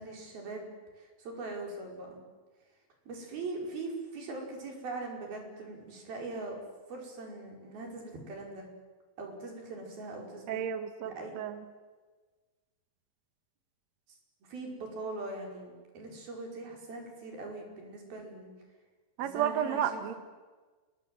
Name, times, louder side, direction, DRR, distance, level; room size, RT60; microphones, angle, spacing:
voice 1, 0.0-2.2 3.1-6.6 6.9-8.7 9.2-10.6 11.0-11.3 14.5-18.5 19.2-20.2, right 3 dB, 90° right, 1 dB, 7.1 m, -41 dB
voice 2, 10.5-11.6 19.2-20.1, right 9 dB, 55° right, 10 dB, 2.3 m, -32 dB
29.0 x 22.0 x 7.9 m, 1.3 s
omnidirectional pair, 4.1 m